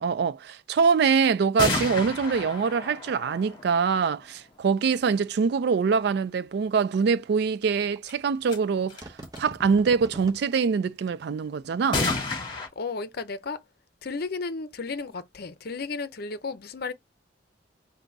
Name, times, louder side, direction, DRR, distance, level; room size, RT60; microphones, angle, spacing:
voice 1, 0.0-9.1 9.4-12.1, right 5 dB, 60° right, 0.3 m, -24 dB
sound 1, 1.6-4.4 8.1-8.2 8.5-8.6 8.9-9.4 11.9-12.7, left 3 dB, 25° left, 1.6 m, -30 dB
sound 2, 6.0-6.1 6.9-7.0 7.9-8.0 9.0-10.4 11.0-11.1, right 2 dB, 20° right, 0.8 m, -42 dB
voice 2, 12.8-13.6 14.0-16.9, left 4 dB, 55° left, 0.6 m, -33 dB
3.9 x 2.7 x 4.5 m
head